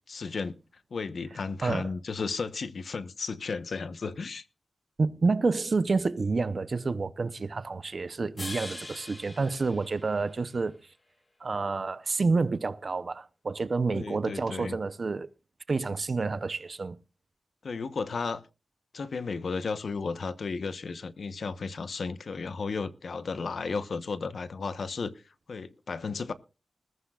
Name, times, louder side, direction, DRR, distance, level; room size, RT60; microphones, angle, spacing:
voice 1, 0.1-0.6 0.9-4.4 13.9-14.8 17.6-18.4 18.9-25.1 25.5-26.3, left 4 dB, 65° left, 0.9 m, -34 dB
voice 2, 5.0-10.8 11.4-15.3 15.7-17.0, right 4 dB, 45° right, 0.7 m, -29 dB
sound 1, 8.4-10.7, left 2 dB, 30° left, 1.8 m, -42 dB
20.5 x 14.0 x 2.4 m
wide cardioid pair, 135°, 0 cm